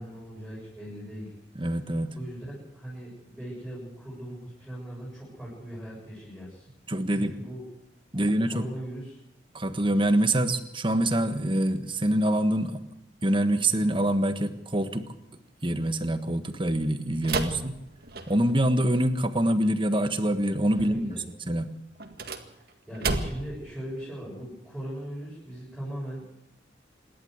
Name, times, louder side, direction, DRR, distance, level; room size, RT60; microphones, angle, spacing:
voice 1, 0.0-1.4 2.1-6.7 7.1-7.6 8.1-9.2 20.8-21.2 22.9-26.4, right 1 dB, ahead, -8 dB, 7.5 m, -39 dB
voice 2, 1.5-2.1 6.9-7.3 8.1-8.6 9.5-12.8 13.2-15.0 15.6-17.7 18.3-21.2 21.5-21.7, right 1 dB, 30° right, 9 dB, 1.5 m, -25 dB
sound 1, 17.2-18.6 22.0-23.6, right 3 dB, 55° right, 1.9 m, -32 dB
27.0 x 12.0 x 8.1 m, 0.83 s
head